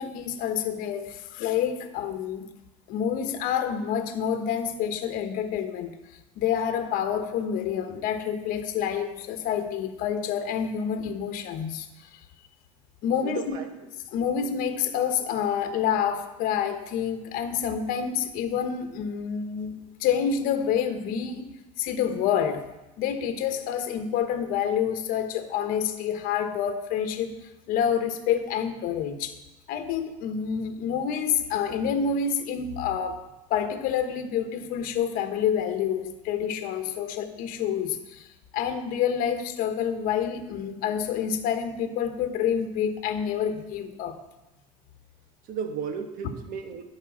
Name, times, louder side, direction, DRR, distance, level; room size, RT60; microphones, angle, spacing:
voice 1, 0.0-2.5 2.9-5.9 6.4-12.1 13.0-13.6 14.1-19.7 20.0-21.5 21.8-22.7 23.0-27.4 27.7-29.3 29.7-33.2 33.5-44.2, left 8 dB, 55° left, 7 dB, 1.1 m, -28 dB
voice 2, 13.2-13.8 45.4-46.8, right 7 dB, 55° right, 6 dB, 1.3 m, -34 dB
11.0 x 4.8 x 7.3 m, 1.0 s
supercardioid pair, 115°, 17 cm